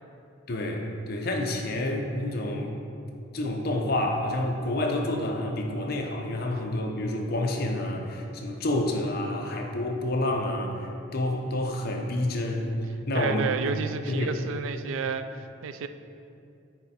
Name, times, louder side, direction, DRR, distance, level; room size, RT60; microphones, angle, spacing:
voice 1, 0.5-2.7 3.3-12.7 13.1-13.5 14.0-14.5, left 1 dB, 50° left, 1 dB, 0.7 m, -29 dB
voice 2, 13.1-15.9, right 5 dB, 85° right, 10 dB, 0.3 m, -31 dB
8.8 x 3.3 x 4.2 m, 2.5 s
head